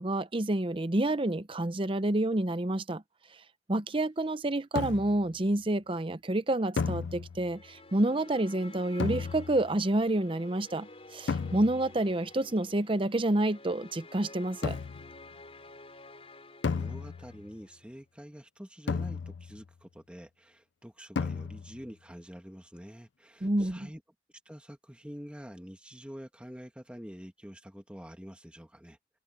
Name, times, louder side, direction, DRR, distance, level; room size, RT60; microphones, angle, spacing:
voice 1, 0.0-3.0 3.7-14.8 23.4-23.9, right 1 dB, 30° right, 0.8 m, -29 dB
sound 1, 4.8-5.3 6.8-7.6 9.0-9.8 11.3-12.0 14.6-15.2 16.6-17.5 18.9-19.7 21.2-21.9, left 5 dB, 75° left, 0.4 m, -34 dB
sound 2, 7.4-17.8, left 2 dB, 35° left, 3.9 m, -51 dB
voice 2, 16.7-24.0 24.5-29.0, equal, 5° right, 1.9 m, -47 dB
head